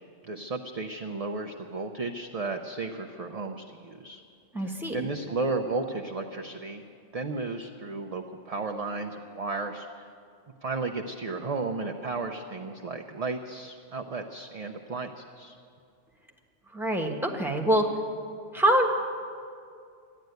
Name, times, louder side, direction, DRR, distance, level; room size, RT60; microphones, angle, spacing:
voice 1, 0.2-4.2 4.6-6.8 7.1-10.1 10.6-15.5, right 3 dB, 40° right, 4 dB, 0.6 m, -34 dB
voice 2, 4.5-5.0 16.7-17.9 18.5-18.9, right 1 dB, ahead, 1 dB, 1.3 m, -24 dB
14.5 x 11.0 x 9.2 m, 2.4 s
omnidirectional pair, 1.3 m